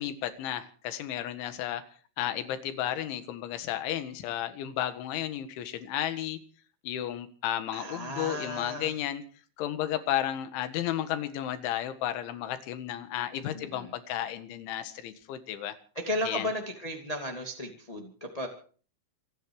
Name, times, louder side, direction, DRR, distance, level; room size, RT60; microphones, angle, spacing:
voice 1, 0.0-1.8 2.2-6.4 6.8-9.2 9.6-15.8 16.3-16.5, left 11 dB, 75° left, 10 dB, 4.0 m, -33 dB
voice 2, 7.7-8.9 13.5-13.9 15.9-18.5, left 1 dB, 15° left, 2 dB, 1.4 m, -34 dB
27.0 x 10.5 x 4.8 m, 0.42 s
omnidirectional pair, 5.5 m